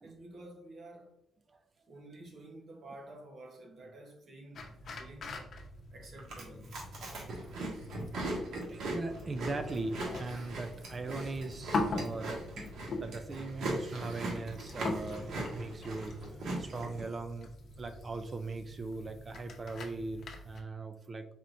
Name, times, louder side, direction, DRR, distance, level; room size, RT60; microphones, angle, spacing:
voice 1, 0.0-1.1 1.8-5.3 5.9-6.9 7.4-7.6, right 1 dB, 50° right, 1.2 m, -51 dB
sound 1, 4.5-20.6, left 2 dB, 50° left, 0.8 m, -42 dB
Chewing mastication, 6.2-17.0, right 2 dB, 75° right, 1.5 m, -40 dB
voice 2, 8.7-12.4 13.0-16.1 16.6-17.5 17.8-21.2, right 3 dB, 30° right, 0.4 m, -39 dB
4.7 x 4.3 x 2.6 m
cardioid pair, 135°, 0 cm